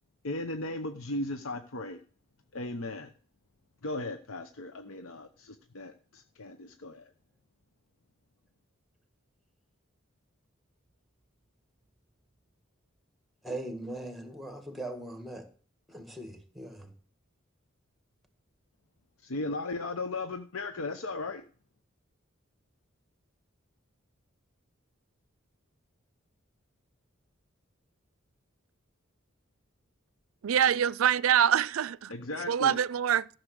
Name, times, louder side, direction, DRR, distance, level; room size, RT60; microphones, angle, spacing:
voice 1, 0.2-2.0 2.5-3.1 3.8-7.1 19.2-21.4 32.1-32.8, left 2 dB, 85° left, 0.9 m, -36 dB
voice 2, 13.4-15.4 15.9-16.9, right 1 dB, ahead, 1.6 m, -40 dB
voice 3, 30.4-32.1 32.5-33.3, right 9 dB, 85° right, 0.4 m, -25 dB
14.0 x 6.4 x 6.4 m
head